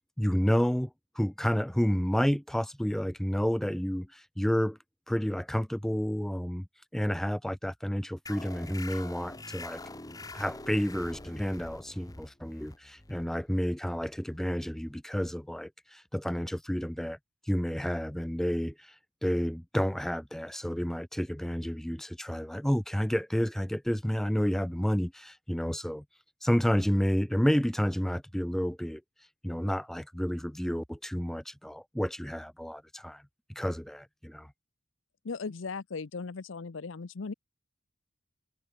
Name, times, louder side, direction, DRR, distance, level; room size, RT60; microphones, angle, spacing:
voice 1, 0.2-4.8 5.1-6.7 6.9-9.8 10.3-17.2 17.5-18.9 19.2-26.0 26.4-29.0 29.4-33.2 33.6-34.5, equal, ahead, 0.4 m, -30 dB
sound 1, 8.3-15.4, left 2 dB, 20° left, 1.4 m, -45 dB
voice 2, 35.2-37.3, left 4 dB, 80° left, 0.7 m, -37 dB
head